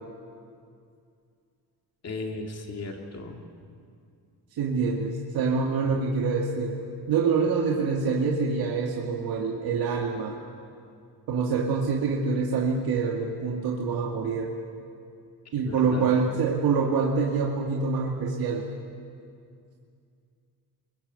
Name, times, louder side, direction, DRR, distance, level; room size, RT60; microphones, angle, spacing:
voice 1, 2.0-3.4 15.7-16.1, left 3 dB, 40° left, 2 dB, 2.6 m, -36 dB
voice 2, 4.6-6.8 7.1-10.3 11.3-14.5 15.5-18.6, right 5 dB, 65° right, -1 dB, 2.2 m, -26 dB
29.0 x 22.5 x 8.3 m, 2.4 s
cardioid pair, 160°, 38 cm